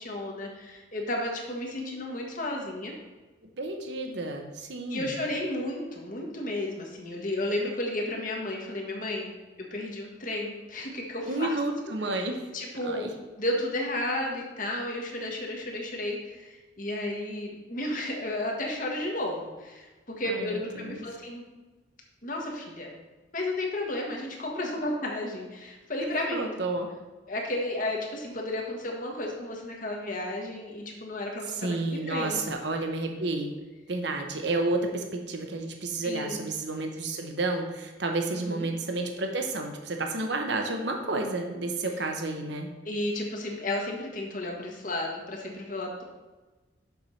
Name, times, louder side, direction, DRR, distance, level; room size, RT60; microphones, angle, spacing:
voice 1, 0.0-2.9 4.9-9.3 9.7-11.6 12.1-12.2 12.5-13.1 13.4-19.9 20.2-21.4 22.2-22.9 23.3-26.5 27.3-31.8 32.1-32.4 36.0-36.4 38.3-38.7 42.8-46.0, left 1 dB, 45° left, 0 dB, 1.4 m, -33 dB
voice 2, 3.6-5.1 11.3-12.4 12.8-13.1 20.2-21.0 26.3-26.9 31.6-33.5 33.9-42.7, right 2 dB, 60° right, 4 dB, 0.9 m, -31 dB
6.9 x 4.7 x 5.6 m, 1.2 s
head